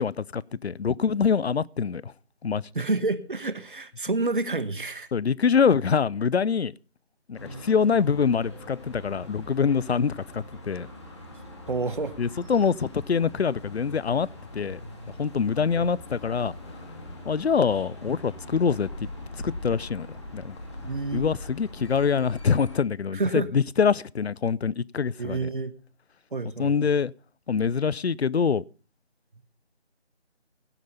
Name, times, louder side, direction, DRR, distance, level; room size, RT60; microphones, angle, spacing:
voice 1, 0.0-2.1 2.4-2.6 5.1-6.7 7.3-10.9 12.2-14.3 14.5-14.8 15.2-16.5 17.3-19.1 19.4-20.1 20.3-20.5 21.1-25.5 26.6-27.1 27.5-28.6, left 6 dB, 65° left, 0.6 m, -25 dB
voice 2, 2.7-5.1 11.7-12.1 15.8-15.9 20.8-21.3 23.1-23.5 25.2-25.7 26.3-26.9, right 3 dB, 50° right, 1.2 m, -29 dB
sound 1, 7.3-22.8, left 1 dB, 25° left, 2.4 m, -42 dB
17.0 x 8.1 x 5.2 m
figure-of-eight pair, 165°, 34 cm